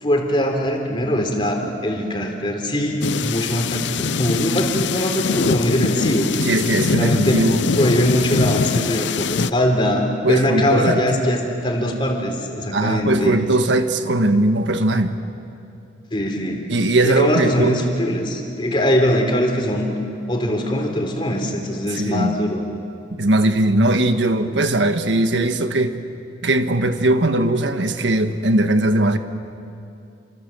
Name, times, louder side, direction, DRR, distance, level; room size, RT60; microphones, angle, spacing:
voice 1, 0.0-6.3 7.0-7.5 7.8-13.4 16.1-16.7 17.0-19.9 20.3-22.6, equal, 25° left, 3 dB, 3.6 m, -21 dB
sound 1, 3.0-9.5, left 4 dB, 85° left, 0.6 m, -23 dB
voice 2, 6.4-7.6 10.2-11.0 12.7-15.2 16.7-17.8 21.9-22.4 23.2-26.0 26.4-29.2, right 1 dB, 85° right, 7 dB, 1.5 m, -19 dB
29.0 x 27.0 x 7.7 m, 2.6 s
head